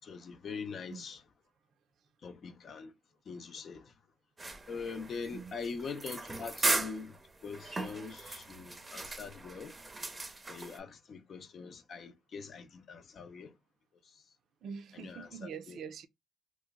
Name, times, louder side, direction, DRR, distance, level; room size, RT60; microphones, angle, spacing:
voice 1, 0.0-1.2 2.2-2.9 3.3-3.9 4.7-9.7 10.5-13.5 14.0-14.2 14.9-15.8, left 5 dB, 55° left, 0.6 m, -43 dB
sound 1, 4.4-10.8, right 2 dB, 20° right, 0.6 m, -37 dB
voice 2, 14.6-16.1, right 6 dB, 70° right, 0.4 m, -44 dB
3.1 x 2.1 x 3.5 m
cardioid pair, 90°, 0 cm